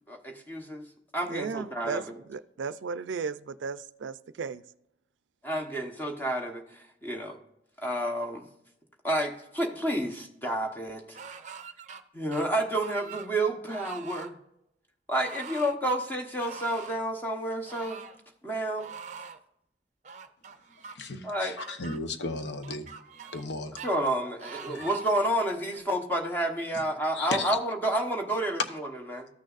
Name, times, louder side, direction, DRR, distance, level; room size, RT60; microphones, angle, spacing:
voice 1, 0.1-0.8 1.1-2.0 5.4-7.4 7.8-8.5 9.0-11.2 12.1-14.4 15.1-18.0 18.4-18.9 21.2-21.6 23.8-29.3, right 1 dB, 10° left, 2 dB, 1.0 m, -30 dB
voice 2, 1.3-4.6, right 5 dB, 90° right, 15 dB, 0.4 m, -35 dB
sound 1, 11.1-12.0 12.3-13.3 13.7-14.3 15.1-15.7 16.3-17.0 17.6-18.2 18.8-19.4 20.0-21.0 21.6-22.0 22.6-23.5 23.8-23.9 24.4-25.2 25.7-25.8, right 6 dB, 40° right, 0.5 m, -44 dB
voice 3, 20.9-22.9 23.3-23.8 24.7-24.8 27.1-27.6, left 3 dB, 75° left, 7 dB, 0.9 m, -35 dB
14.0 x 6.4 x 2.4 m, 0.80 s
head